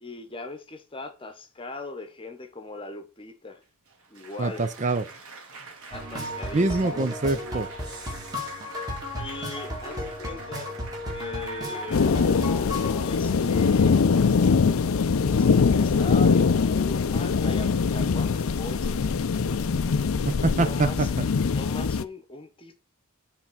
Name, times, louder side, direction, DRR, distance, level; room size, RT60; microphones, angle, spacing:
voice 1, 0.0-3.6 4.1-4.6 5.9-7.1 9.2-10.7 11.1-12.1 13.0-14.0 15.3-19.0 20.5-21.1 21.5-22.8, left 2 dB, 25° left, 1.0 m, -39 dB
Applause, 3.6-12.1, right 4 dB, 75° right, 1.9 m, -46 dB
voice 2, 4.4-5.0 6.5-7.7 20.4-20.9, right 2 dB, 35° right, 0.5 m, -24 dB
sound 1, 5.9-13.1, left 1 dB, 15° right, 2.0 m, -34 dB
sound 2, 11.9-22.0, left 5 dB, 70° left, 0.5 m, -22 dB
7.2 x 3.5 x 5.7 m
head